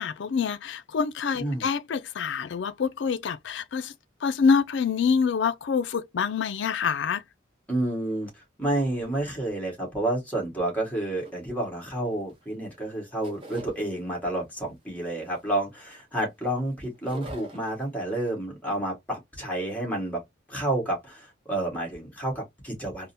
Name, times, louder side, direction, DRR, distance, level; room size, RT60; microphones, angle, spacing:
voice 1, 0.0-3.9 4.2-7.2, left 5 dB, 60° left, 0.4 m, -26 dB
voice 2, 7.7-20.2 20.5-23.1, right 1 dB, 10° left, 1.5 m, -30 dB
sound 1, 11.2-12.4 12.7-13.8 14.3-14.7 15.2-16.6 16.9-17.9, right 2 dB, 25° right, 0.8 m, -45 dB
3.7 x 2.0 x 2.6 m
head